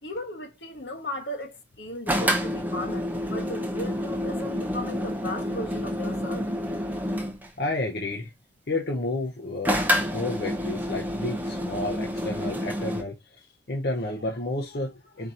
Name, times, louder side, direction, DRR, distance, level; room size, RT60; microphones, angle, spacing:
voice 1, 0.0-6.4, left 1 dB, 75° left, 1.3 m, -36 dB
sound 1, 2.1-7.5 9.6-13.0, equal, 10° right, 0.7 m, -28 dB
voice 2, 7.6-8.3 8.7-15.3, left 2 dB, 60° left, 0.7 m, -31 dB
4.5 x 4.3 x 2.5 m
head